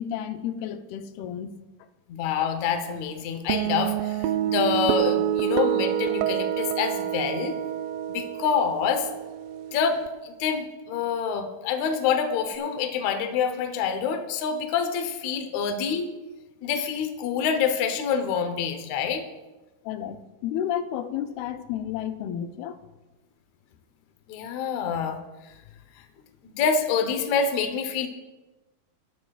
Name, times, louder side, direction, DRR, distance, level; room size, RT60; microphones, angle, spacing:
voice 1, 0.0-1.5 19.9-22.8, left 10 dB, 85° left, 9 dB, 2.6 m, -31 dB
voice 2, 2.1-7.5 8.1-9.1 9.7-16.1 16.6-19.2 24.3-25.2 26.4-28.1, left 6 dB, 65° left, 6 dB, 1.9 m, -26 dB
sound 1, 3.5-10.1, right 10 dB, 80° right, 2.0 m, -27 dB
19.5 x 11.0 x 2.4 m, 1.1 s
omnidirectional pair, 4.3 m